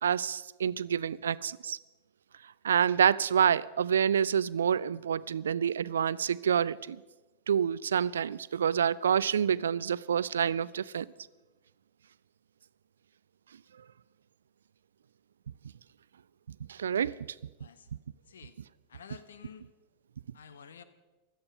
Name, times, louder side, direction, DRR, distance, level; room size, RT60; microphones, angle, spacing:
voice 1, 0.0-1.8 2.6-7.0 7.5-11.1 16.7-17.3, right 8 dB, 65° right, 0.4 m, -27 dB
voice 2, 17.6-17.9 18.3-18.5 18.9-19.7 20.3-20.8, left 7 dB, 65° left, 1.0 m, -50 dB
16.5 x 12.5 x 5.3 m
figure-of-eight pair, 90°, 0 cm